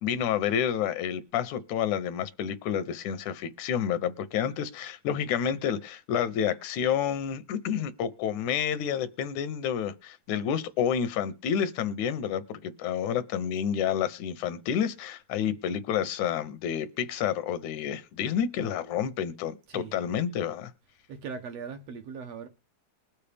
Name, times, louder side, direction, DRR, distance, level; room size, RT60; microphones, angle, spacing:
voice 1, 0.0-20.7, left 8 dB, 80° left, 2.2 m, -29 dB
voice 2, 19.7-20.1 21.1-22.5, right 5 dB, 70° right, 1.8 m, -39 dB
21.0 x 7.0 x 3.4 m
omnidirectional pair, 3.4 m